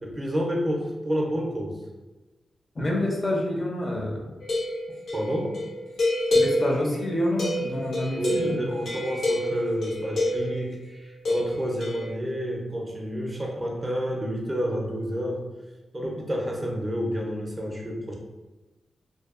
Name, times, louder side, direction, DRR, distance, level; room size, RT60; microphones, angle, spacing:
voice 1, 0.0-1.8 5.1-5.6 8.1-15.4 15.9-18.1, equal, 20° right, -1 dB, 0.5 m, -29 dB
voice 2, 2.8-4.2 6.3-8.7, left 1 dB, 35° left, -1 dB, 0.5 m, -27 dB
sound 1, 4.4-10.7 11.2-12.1, left 1 dB, 85° left, 0.7 m, -28 dB
2.6 x 2.3 x 2.4 m, 1.1 s
wide cardioid pair, 115°, 0 cm